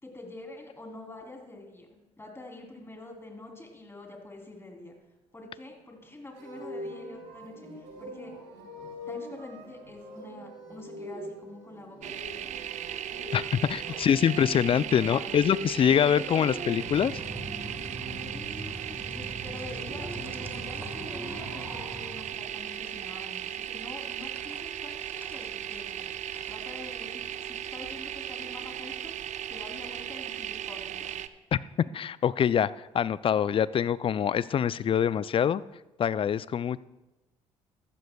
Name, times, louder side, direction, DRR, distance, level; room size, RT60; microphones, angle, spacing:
voice 1, 0.0-5.0 5.3-8.3 9.1-12.6 13.5-15.4 15.8-16.7 18.3-26.1 26.5-29.1 29.5-31.2 31.8-31.9, left 2 dB, 15° left, 1 dB, 3.3 m, -46 dB
sound 1, 6.3-18.3 19.4-21.6, right 1 dB, 75° right, 4.0 m, -43 dB
sound 2, 12.0-31.3, right 10 dB, 50° right, 0.5 m, -37 dB
voice 2, 13.3-17.1 31.5-31.6 31.9-35.6 36.0-36.8, left 8 dB, 35° left, 19 dB, 0.4 m, -25 dB
sound 3, 16.8-28.3, right 1 dB, 15° right, 1.5 m, -43 dB
14.5 x 12.0 x 2.3 m, 1.0 s
hypercardioid pair, 50°, 15 cm